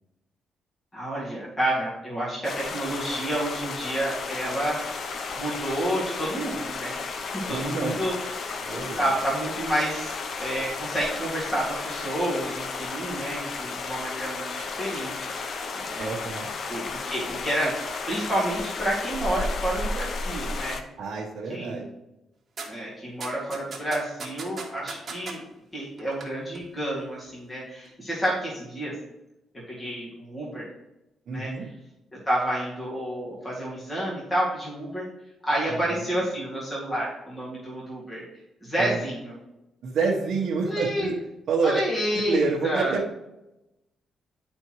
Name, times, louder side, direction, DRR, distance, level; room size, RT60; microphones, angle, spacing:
voice 1, 0.9-5.0 5.4-8.5 8.8-15.3 15.8-16.1 16.7-17.7 18.1-20.8 21.5-21.8 22.7-25.4 25.7-28.9 29.7-30.7 31.3-31.5 32.3-35.1 35.4-38.2 38.6-39.3 40.7-41.1 41.6-42.9, right 1 dB, 20° left, -6 dB, 2.1 m, -29 dB
sound 1, 2.4-20.8, left 4 dB, 55° left, 0.6 m, -33 dB
voice 2, 7.5-8.0 8.6-9.0 16.0-16.5 21.0-21.9 31.3-31.7 35.7-36.1 38.8-39.0 39.8-41.2 41.5-41.8 42.3-43.1, right 4 dB, 65° right, -5 dB, 1.0 m, -28 dB
sound 2, 22.6-22.7 23.2-25.3 26.0-26.3 26.5-26.6, right 4 dB, 40° right, 1.4 m, -36 dB
10.5 x 4.4 x 3.1 m, 0.94 s
cardioid pair, 120°, 0 cm